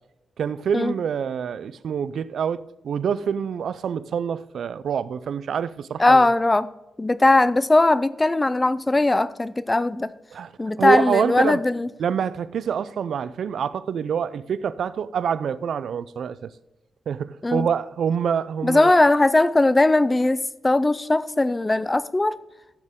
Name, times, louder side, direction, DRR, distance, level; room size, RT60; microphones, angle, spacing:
voice 1, 0.4-6.3 10.3-10.5 10.8-11.6 12.0-16.5 17.1-18.9, right 7 dB, 65° right, 0.4 m, -26 dB
voice 2, 6.0-6.7 7.0-10.1 10.6-11.9 17.4-17.7 18.6-22.4, left 2 dB, 15° left, 0.4 m, -19 dB
15.5 x 6.6 x 3.6 m
wide cardioid pair, 155°, 0 cm